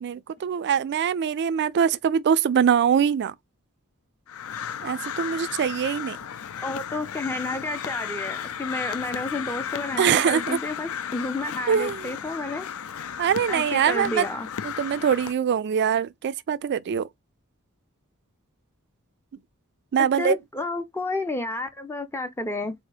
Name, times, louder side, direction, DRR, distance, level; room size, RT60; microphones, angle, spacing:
voice 1, 0.0-3.3 4.8-6.2 10.0-10.6 11.7-12.1 13.2-14.3 14.6-17.1 19.9-20.4, right 8 dB, 50° right, 0.3 m, -23 dB
Crow, 4.3-15.3, left 8 dB, 70° left, 0.5 m, -34 dB
voice 2, 6.6-12.7 13.5-14.5 20.0-22.7, left 2 dB, 10° left, 0.5 m, -31 dB
4.0 x 2.7 x 4.7 m
head